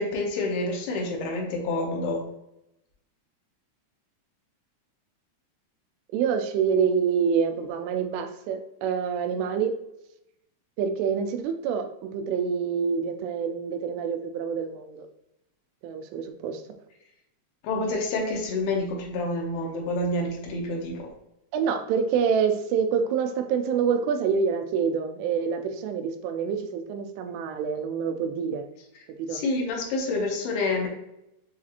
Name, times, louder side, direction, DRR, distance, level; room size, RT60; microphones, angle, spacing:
voice 1, 0.0-2.2 17.6-21.0 29.3-30.9, left 2 dB, 80° left, 0 dB, 2.8 m, -28 dB
voice 2, 6.1-9.7 10.8-15.1 15.8-16.6 21.5-28.7 29.2-29.4, right 6 dB, 90° right, 6 dB, 2.6 m, -26 dB
7.3 x 2.4 x 2.8 m, 0.85 s
omnidirectional pair, 4.6 m